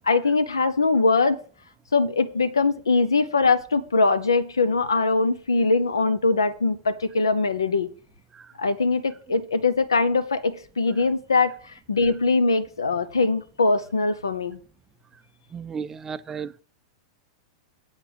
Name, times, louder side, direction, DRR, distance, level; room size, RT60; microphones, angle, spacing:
voice 1, 0.1-1.4 1.9-7.9 8.6-14.6, left 3 dB, 75° left, 0.7 m, -22 dB
voice 2, 15.5-16.6, right 6 dB, 20° right, 0.4 m, -35 dB
8.0 x 6.2 x 4.9 m
figure-of-eight pair, 95°, 2 cm